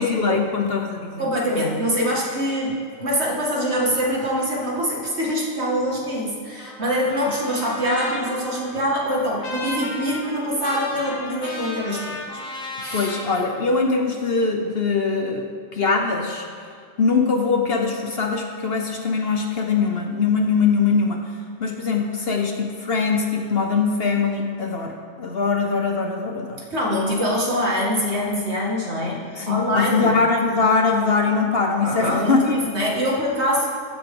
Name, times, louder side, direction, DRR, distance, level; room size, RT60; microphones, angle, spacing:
voice 1, 0.0-1.3 12.9-16.5 17.0-21.3 21.6-26.7 29.3-32.4, left 4 dB, 50° left, 3 dB, 1.0 m, -22 dB
voice 2, 1.2-12.2 12.8-13.1 26.7-30.2 31.8-33.8, equal, 55° right, -3 dB, 2.4 m, -24 dB
Trumpet, 6.6-13.3, left 2 dB, 85° left, 1.9 m, -34 dB
15.0 x 10.5 x 3.9 m, 2.2 s
omnidirectional pair, 1.4 m